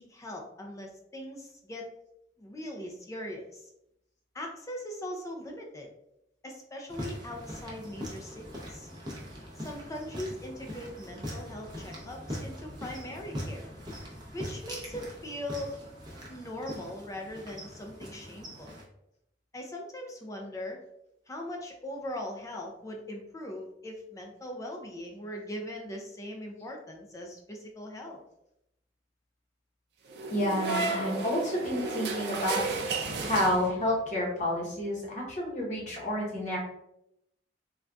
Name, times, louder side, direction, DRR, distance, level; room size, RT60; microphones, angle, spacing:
voice 1, 0.0-1.9 2.4-3.7 4.3-5.9 6.4-8.9 9.6-13.7 14.3-15.8 16.3-18.7 19.5-20.8 21.3-28.2, left 1 dB, 20° left, 1 dB, 0.4 m, -40 dB
sound 1, 6.9-18.8, equal, 25° right, 0.7 m, -42 dB
sound 2, 30.1-34.0, right 3 dB, 60° right, 0.5 m, -33 dB
voice 2, 30.3-36.6, left 1 dB, 40° left, -3 dB, 0.9 m, -30 dB
3.7 x 2.3 x 2.3 m, 0.81 s
head